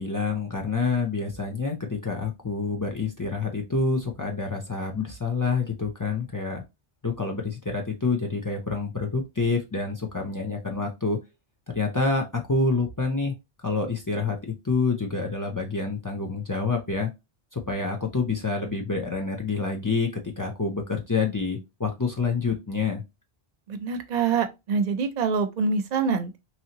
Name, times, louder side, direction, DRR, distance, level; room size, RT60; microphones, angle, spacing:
voice 1, 0.0-6.6 7.0-11.2 11.7-13.3 13.6-14.4 14.6-17.1 17.5-23.0, left 4 dB, 30° left, 0.4 m, -27 dB
voice 2, 23.7-26.4, right 5 dB, 50° right, 0.6 m, -25 dB
3.1 x 2.8 x 2.7 m
omnidirectional pair, 1.0 m